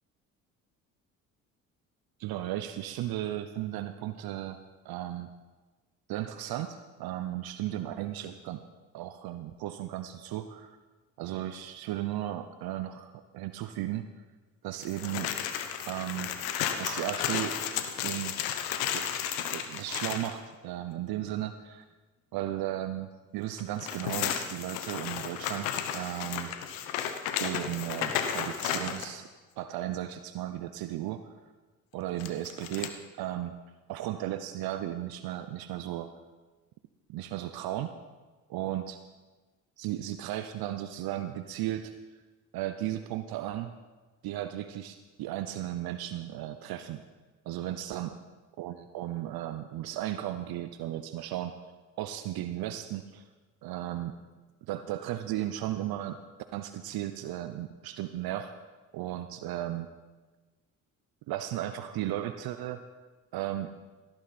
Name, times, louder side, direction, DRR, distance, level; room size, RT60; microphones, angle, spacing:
voice 1, 2.2-4.6 4.8-5.3 6.1-8.6 8.9-10.8 11.2-14.1 14.6-15.3 15.9-16.3 16.8-17.6 18.0-18.4 18.9-19.1 19.5-21.8 22.3-26.5 27.4-29.3 29.6-31.3 31.9-33.5 33.9-36.2 37.1-38.0 38.5-39.0 39.8-41.9 42.5-43.8 44.2-47.0 47.5-48.1 48.6-51.6 52.0-53.2 53.6-54.1 54.7-56.2 56.5-58.5 58.9-59.9 61.3-62.8 63.3-63.7, right 13 dB, 65° right, 10 dB, 0.7 m, -35 dB
sound 1, 14.8-20.3 23.6-29.1 32.2-32.9, left 9 dB, 85° left, 1.0 m, -33 dB
17.0 x 10.5 x 4.2 m, 1.3 s
hypercardioid pair, 55°, 40 cm